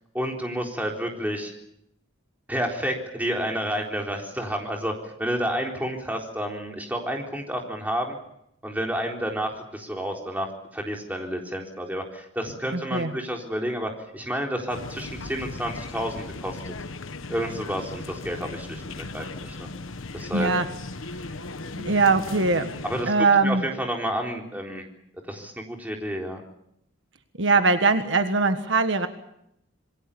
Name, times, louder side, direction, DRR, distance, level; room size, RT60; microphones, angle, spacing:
voice 1, 0.1-1.5 2.5-8.2 8.6-10.5 10.7-16.7 17.3-19.7 20.1-20.5 22.8-23.1 23.4-24.8 25.3-26.4, equal, 10° right, 1 dB, 4.0 m, -30 dB
voice 2, 12.7-13.1 20.3-20.7 21.8-22.7 23.0-23.7 27.4-29.1, right 3 dB, 65° right, 8 dB, 1.6 m, -21 dB
sound 1, 14.7-23.1, left 2 dB, 85° left, 1.3 m, -37 dB
26.5 x 22.5 x 7.1 m, 0.77 s
head